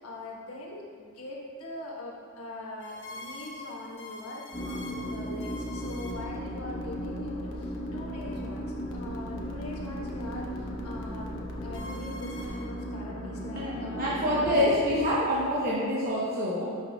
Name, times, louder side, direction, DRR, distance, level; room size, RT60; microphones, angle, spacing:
voice 1, 0.0-14.3 15.3-15.6, left 1 dB, 80° left, -2 dB, 1.3 m, -42 dB
sound 1, 2.8-12.6, left 2 dB, 55° left, 0.9 m, -45 dB
sound 2, 4.5-14.7, equal, 25° left, 1.0 m, -36 dB
voice 2, 13.6-16.8, equal, 40° right, -8 dB, 1.0 m, -26 dB
10.5 x 5.5 x 2.3 m, 2.1 s
head